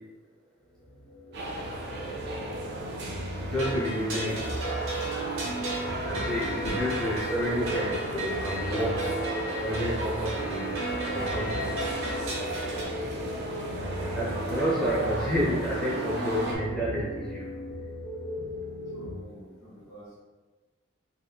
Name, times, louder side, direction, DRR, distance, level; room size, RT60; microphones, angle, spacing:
sound 1, 0.7-19.1, equal, 50° left, 0.6 m, -37 dB
sound 2, 1.3-16.6, right 2 dB, 50° right, 0.5 m, -35 dB
voice 1, 3.4-4.6 6.1-9.1 9.6-10.7 11.1-11.7 14.1-17.5, equal, 5° left, -9 dB, 0.5 m, -30 dB
sound 3, 3.5-12.8, right 2 dB, 80° right, 0.7 m, -35 dB
voice 2, 18.9-20.2, right 1 dB, 75° left, -8 dB, 1.4 m, -50 dB
2.9 x 2.6 x 2.2 m, 1.3 s
head